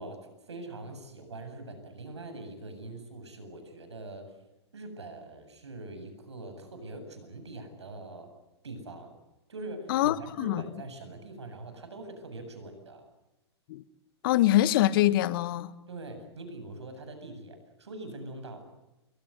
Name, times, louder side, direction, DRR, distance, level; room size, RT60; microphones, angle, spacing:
voice 1, 0.0-4.4 4.7-8.3 8.6-9.1 9.5-13.1 15.9-18.6, right 2 dB, 80° right, 8.0 m, -43 dB
voice 2, 9.9-10.6 13.7-13.8 14.2-15.7, left 14 dB, 55° left, 1.4 m, -24 dB
30.0 x 23.0 x 8.1 m
figure-of-eight pair, 105°, 14 cm